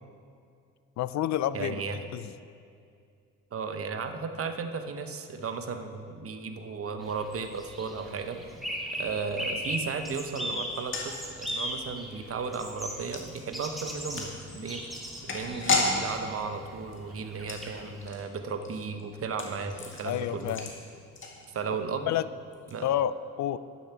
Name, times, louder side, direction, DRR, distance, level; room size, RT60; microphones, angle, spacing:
voice 1, 1.0-1.8 2.1-2.3 20.0-20.7 22.1-22.3 22.8-23.6, left 11 dB, 65° left, 15 dB, 0.5 m, -29 dB
voice 2, 1.5-2.0 3.5-8.4 8.9-14.8 15.2-20.5 21.5-22.1 22.7-22.9, right 5 dB, 50° right, 7 dB, 0.9 m, -35 dB
sound 1, 7.0-18.1, equal, ahead, 1.9 m, -38 dB
sound 2, 10.7-21.9 22.1-22.2 22.5-22.7, left 3 dB, 40° left, 1.9 m, -35 dB
11.5 x 7.1 x 5.9 m, 2.4 s
cardioid pair, 90°, 30 cm